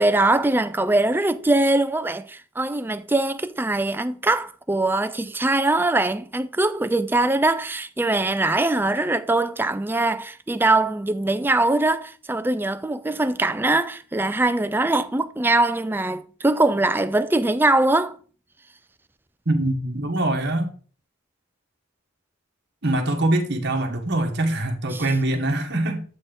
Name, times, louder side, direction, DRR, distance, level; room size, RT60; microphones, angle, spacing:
voice 1, 0.0-18.2 24.9-25.1, right 2 dB, 10° right, 0.3 m, -22 dB
voice 2, 19.5-20.7 22.8-26.0, right 1 dB, 55° right, 1.3 m, -23 dB
7.8 x 4.2 x 3.8 m
head